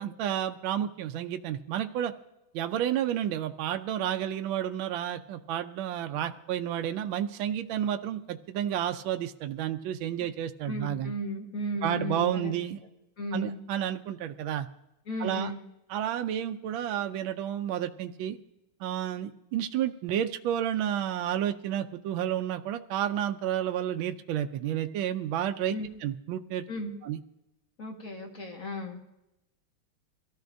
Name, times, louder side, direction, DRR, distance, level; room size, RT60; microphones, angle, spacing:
voice 1, 0.0-2.1 2.5-11.1 11.8-12.8 13.3-14.7 15.2-15.5 15.9-18.4 18.8-26.6 27.0-27.2, right 10 dB, 75° right, 7 dB, 1.3 m, -31 dB
voice 2, 10.7-12.6 13.2-13.6 15.1-15.6 25.7-25.9 26.7-26.9 27.8-29.0, left 1 dB, 40° left, 0 dB, 1.9 m, -35 dB
23.0 x 14.5 x 2.6 m, 0.91 s
omnidirectional pair, 2.3 m